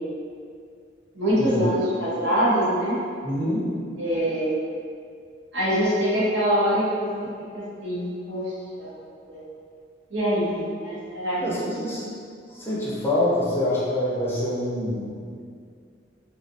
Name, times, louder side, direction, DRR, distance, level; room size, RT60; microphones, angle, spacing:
voice 1, 1.1-3.0 4.0-4.5 5.5-7.1 7.5-8.5 8.8-8.9 9.3-9.4 10.1-11.8, equal, 65° right, -9 dB, 0.9 m, -24 dB
voice 2, 3.2-3.7 11.4-12.1 12.5-15.2, left 1 dB, 15° left, -8 dB, 0.5 m, -26 dB
2.7 x 2.4 x 2.5 m, 2.2 s
head